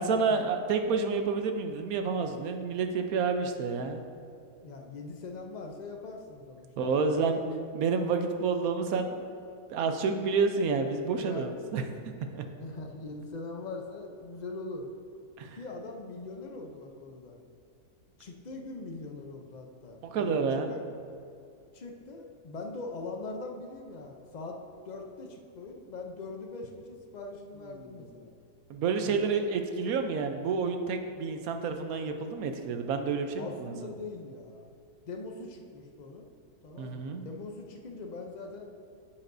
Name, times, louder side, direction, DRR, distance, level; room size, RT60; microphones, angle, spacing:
voice 1, 0.0-4.0 6.8-7.4 7.7-9.3 9.7-11.8 12.3-12.4 15.4-15.6 20.0-20.7 28.7-33.7 36.8-37.3, right 5 dB, 70° right, 6 dB, 1.1 m, -29 dB
voice 2, 4.6-7.4 11.2-11.5 12.6-14.9 15.5-17.4 18.2-20.8 21.7-24.6 24.9-28.3 29.0-29.5 33.4-34.7 35.0-36.3 36.6-38.7, left 3 dB, 65° left, 2 dB, 0.4 m, -42 dB
11.0 x 7.2 x 2.6 m, 2.5 s
omnidirectional pair, 1.7 m